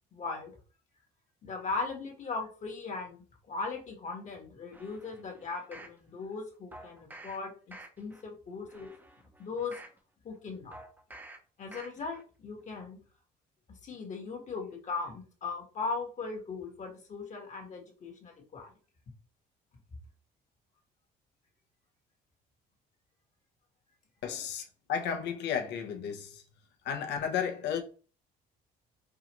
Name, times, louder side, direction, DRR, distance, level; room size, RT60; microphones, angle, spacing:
voice 1, 0.1-0.5 1.4-3.2 3.5-8.9 9.4-9.8 10.2-10.7 11.6-13.0 13.8-18.7, left 4 dB, 45° left, 1.3 m, -38 dB
sound 1, 4.7-6.0 6.7-7.4 7.7-8.2 8.7-10.0 10.7-11.4 11.7-12.2 12.6-12.7, right 1 dB, 10° right, 0.7 m, -50 dB
voice 2, 24.2-24.6 24.9-26.4 26.8-27.8, left 7 dB, 75° left, 0.9 m, -33 dB
4.7 x 2.5 x 2.9 m
cardioid pair, 115°, 18 cm